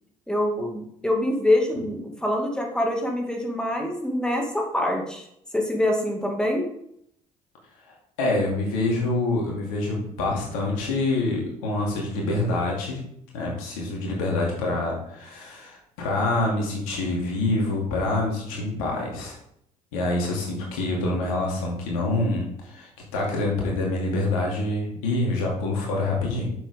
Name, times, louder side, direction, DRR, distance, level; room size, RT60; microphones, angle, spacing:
voice 1, 0.3-5.2 5.5-6.7, left 1 dB, 5° left, 1 dB, 2.2 m, -25 dB
voice 2, 8.2-13.0 13.3-19.4 19.9-26.5, left 2 dB, 75° left, -2 dB, 2.6 m, -26 dB
9.0 x 7.2 x 3.7 m, 0.72 s
figure-of-eight pair, 55°, 19 cm